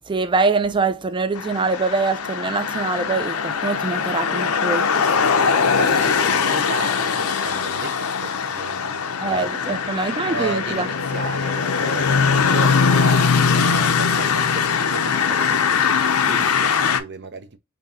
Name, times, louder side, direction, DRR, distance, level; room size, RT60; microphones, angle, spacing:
voice 1, 0.1-4.9 9.2-10.9 11.2-11.3, right 3 dB, 20° right, 0.5 m, -23 dB
sound 1, 1.4-17.0, left 6 dB, 80° left, 0.6 m, -21 dB
voice 2, 4.9-17.6, right 4 dB, 55° right, 0.8 m, -34 dB
5.2 x 2.8 x 2.8 m
head